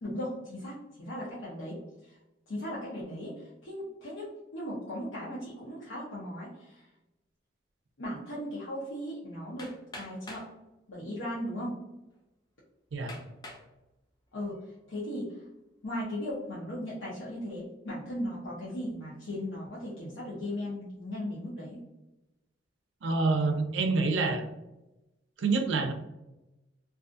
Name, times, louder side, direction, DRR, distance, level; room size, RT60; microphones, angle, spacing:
voice 1, 0.0-2.2 2.5-6.9 8.0-9.7 10.0-10.5 10.9-11.7 14.3-14.6 14.9-15.4 15.8-21.8, equal, 80° left, -7 dB, 0.7 m, -37 dB
Hammer, 9.6-10.5 11.4-11.5 12.1-12.2 13.1-13.7 14.3-14.7, left 1 dB, 20° left, 0.4 m, -45 dB
voice 2, 23.0-24.5 25.4-25.9, right 3 dB, 70° right, 6 dB, 0.4 m, -27 dB
2.4 x 2.3 x 2.5 m, 0.97 s
head